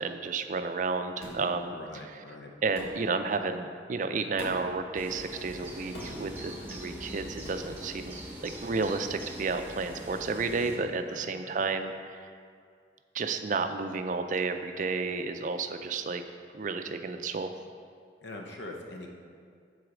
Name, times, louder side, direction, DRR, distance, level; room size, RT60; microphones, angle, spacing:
voice 1, 0.0-1.7 2.6-8.1 8.4-12.3 13.1-16.2 16.5-17.5, right 4 dB, 45° right, 8 dB, 0.4 m, -31 dB
sound 1, 1.2-1.5 2.7-3.0 4.4-4.7 5.9-6.3 7.4-7.7, equal, 60° left, 1.9 m, -41 dB
voice 2, 1.6-2.5 10.9-11.6 18.2-19.1, left 2 dB, 75° left, 1 dB, 0.8 m, -43 dB
sound 2, 4.9-10.8, equal, 10° right, 0.8 m, -43 dB
8.0 x 4.1 x 6.0 m, 2.2 s
head